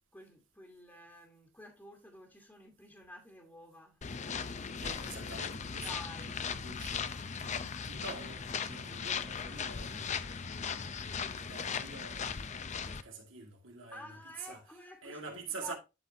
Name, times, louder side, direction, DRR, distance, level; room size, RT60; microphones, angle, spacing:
voice 1, 0.1-4.0 5.8-6.4 13.9-15.7, left 1 dB, 10° left, 1.4 m, -51 dB
sound 1, 4.0-13.0, left 6 dB, 35° left, 0.5 m, -38 dB
voice 2, 4.8-15.7, right 4 dB, 80° right, 2.1 m, -47 dB
12.0 x 4.1 x 2.7 m
head